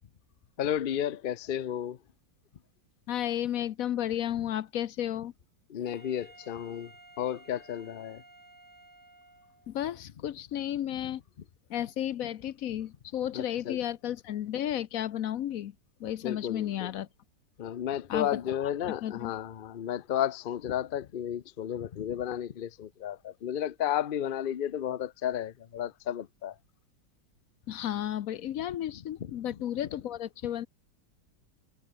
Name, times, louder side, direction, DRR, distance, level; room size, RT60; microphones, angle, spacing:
voice 1, 0.6-2.0 5.7-6.9 7.2-8.2 13.3-13.8 16.2-16.9 17.6-26.5 29.2-29.3, left 10 dB, 85° left, 0.4 m, -33 dB
voice 2, 3.1-5.3 9.7-11.2 11.7-15.7 16.0-17.1 18.1-18.3 18.6-18.7 19.0-19.3 27.7-30.7, left 11 dB, 65° left, 1.0 m, -33 dB
Wind instrument woodwind instrument, 5.8-9.8, right 2 dB, 10° right, 1.4 m, -55 dB
omnidirectional pair, 2.0 m